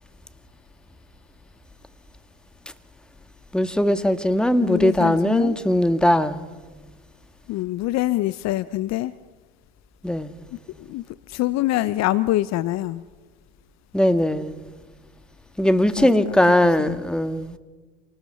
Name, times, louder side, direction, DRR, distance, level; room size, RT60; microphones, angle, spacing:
voice 1, 3.5-6.4 10.0-10.3 13.9-14.6 15.6-17.6, left 1 dB, ahead, 1.7 m, -20 dB
voice 2, 4.6-5.6 7.5-9.1 10.8-13.0 16.0-16.3 16.6-17.0, left 16 dB, 50° left, 0.8 m, -25 dB
28.0 x 19.5 x 5.6 m
hypercardioid pair, 65°, 34 cm